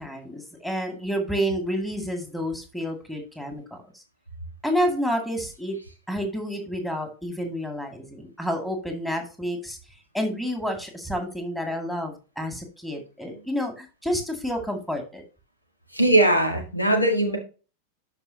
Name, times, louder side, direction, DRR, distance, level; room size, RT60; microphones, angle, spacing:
voice 1, 0.0-4.0 4.6-5.8 6.1-9.8 10.1-15.2, equal, 5° left, 3 dB, 2.3 m, -29 dB
voice 2, 15.9-17.4, right 1 dB, 85° left, 4 dB, 1.8 m, -20 dB
12.5 x 5.0 x 2.8 m, 0.33 s
figure-of-eight pair, 90°, 0 cm